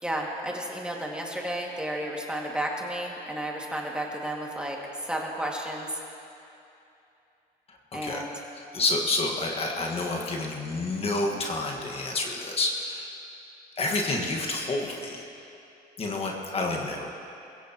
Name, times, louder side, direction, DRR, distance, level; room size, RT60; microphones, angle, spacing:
voice 1, 0.0-6.0 7.9-8.3, right 1 dB, 5° right, -2 dB, 2.0 m, -32 dB
voice 2, 7.7-8.4 8.7-13.1 13.8-15.2 16.0-17.1, left 2 dB, 35° left, 0 dB, 1.6 m, -29 dB
21.5 x 16.0 x 3.0 m, 2.7 s
cardioid pair, 110°, 17 cm